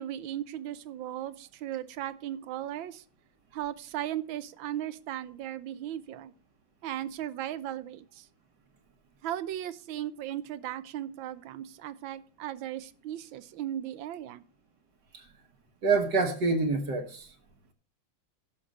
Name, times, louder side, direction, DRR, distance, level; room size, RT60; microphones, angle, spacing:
voice 1, 0.0-3.0 3.5-6.3 6.8-8.3 9.2-14.4, right 12 dB, 85° right, 15 dB, 1.5 m, -37 dB
voice 2, 15.8-17.3, right 3 dB, 60° right, 4 dB, 1.8 m, -26 dB
11.5 x 6.7 x 5.2 m, 0.41 s
omnidirectional pair, 2.1 m